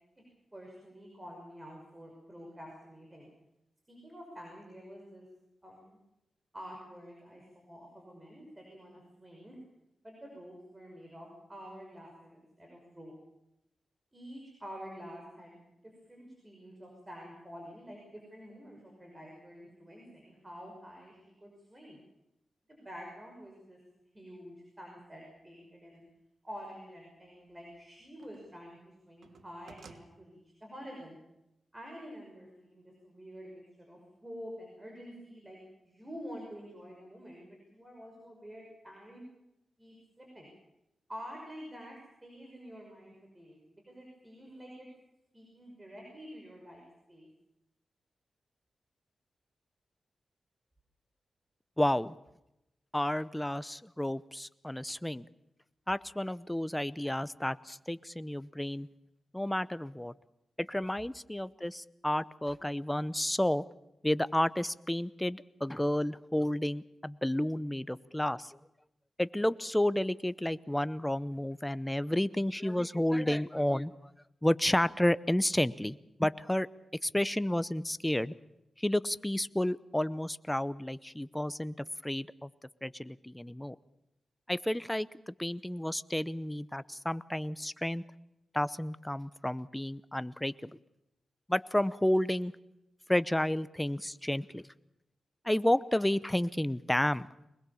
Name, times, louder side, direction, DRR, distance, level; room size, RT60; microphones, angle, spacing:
voice 1, 0.5-3.3 3.9-5.3 5.6-6.0 6.5-9.6 10.0-13.1 14.1-22.0 22.7-23.8 24.1-26.0 26.4-31.2 31.7-35.6 35.8-39.2 39.8-40.5 41.1-44.9 45.3-47.3, equal, 20° right, 1 dB, 5.6 m, -48 dB
sound 1, 25.5-25.6 27.3-28.6 28.9-30.1, right 5 dB, 75° right, 1.4 m, -57 dB
voice 2, 51.8-52.1 52.9-55.2 55.9-58.9 59.3-60.1 60.6-63.6 64.0-68.6 69.2-74.1 74.4-76.7 77.0-78.3 78.8-81.7 82.0-82.5 82.8-83.8 84.5-88.0 88.5-90.8 91.5-92.5 93.1-94.6 95.4-97.3, left 1 dB, 10° left, 16 dB, 0.7 m, -31 dB
22.5 x 21.0 x 7.1 m, 0.88 s
cardioid pair, 80°, 0 cm